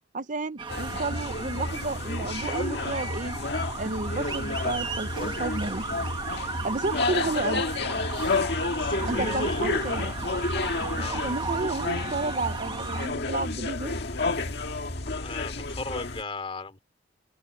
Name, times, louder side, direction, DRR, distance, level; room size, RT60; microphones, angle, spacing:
voice 1, 0.1-3.4 3.8-5.9 6.6-7.6 9.1-10.1 11.0-14.0, right 3 dB, 40° right, 0.7 m, -32 dB
sound 1, 0.6-13.1, right 4 dB, 25° right, 1.2 m, -35 dB
sound 2, 0.7-16.2, left 3 dB, 55° left, 1.7 m, -30 dB
voice 2, 8.5-9.7 11.0-11.2 15.2-16.8, left 3 dB, 30° left, 2.8 m, -37 dB
head